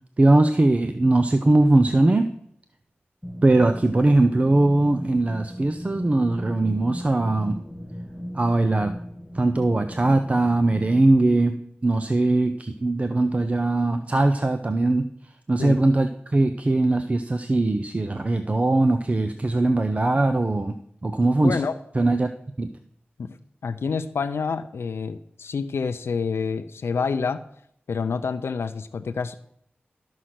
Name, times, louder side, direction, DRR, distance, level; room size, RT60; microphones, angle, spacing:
voice 1, 0.2-2.3 3.4-7.6 8.3-9.0 9.3-15.1 15.5-20.7 21.0-21.6 21.9-22.3 22.6-22.7, right 2 dB, 35° right, 8 dB, 0.6 m, -20 dB
sound 1, 3.2-11.0, equal, 5° left, 2.6 m, -38 dB
voice 2, 21.4-21.8 23.2-23.4 23.6-27.4 27.9-29.4, left 5 dB, 85° left, 9 dB, 0.5 m, -28 dB
12.5 x 6.4 x 5.9 m, 0.69 s
wide cardioid pair, 75°, 4 cm